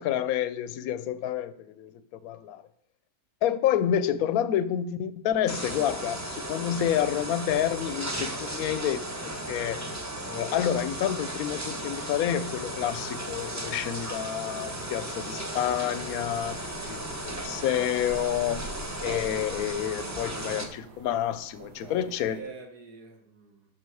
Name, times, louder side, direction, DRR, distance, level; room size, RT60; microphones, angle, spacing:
voice 1, 0.0-1.9 2.2-2.6 3.4-9.0 9.5-9.8 10.3-18.6 19.0-22.4, left 10 dB, 70° left, 13 dB, 1.0 m, -29 dB
sound 1, 5.5-20.7, right 1 dB, 15° right, 0.7 m, -35 dB
sound 2, 12.9-22.4, right 3 dB, 90° right, 1.5 m, -49 dB
voice 2, 21.6-23.7, right 4 dB, 70° right, 3 dB, 2.0 m, -46 dB
12.5 x 5.5 x 4.7 m, 0.68 s
omnidirectional pair, 1.7 m